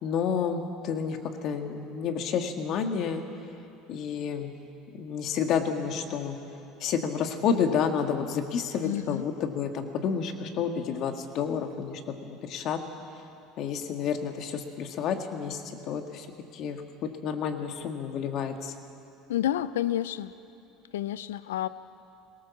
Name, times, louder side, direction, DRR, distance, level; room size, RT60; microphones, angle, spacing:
voice 1, 0.0-3.2 3.9-4.5 4.9-6.4 6.8-12.8 13.6-16.3 16.5-18.7, left 7 dB, 55° left, 5 dB, 1.9 m, -30 dB
voice 2, 8.8-9.2 19.3-20.3 20.9-21.7, left 12 dB, 85° left, 16 dB, 0.5 m, -29 dB
21.0 x 18.5 x 7.2 m, 2.7 s
hypercardioid pair, 85°, 0 cm